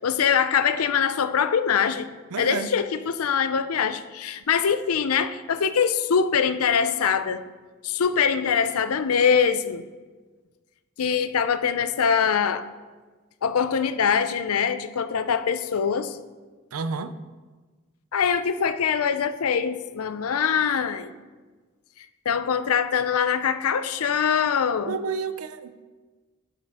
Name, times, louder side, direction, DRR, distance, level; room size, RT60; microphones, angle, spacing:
voice 1, 0.0-2.1 2.4-7.4 7.8-9.8 11.0-12.6 13.4-16.2 18.1-21.1 22.3-25.0, left 7 dB, 90° left, 0.5 m, -23 dB
voice 2, 2.3-2.7 16.7-17.1 24.9-25.7, right 5 dB, 85° right, 0.5 m, -30 dB
9.8 x 7.1 x 3.5 m
head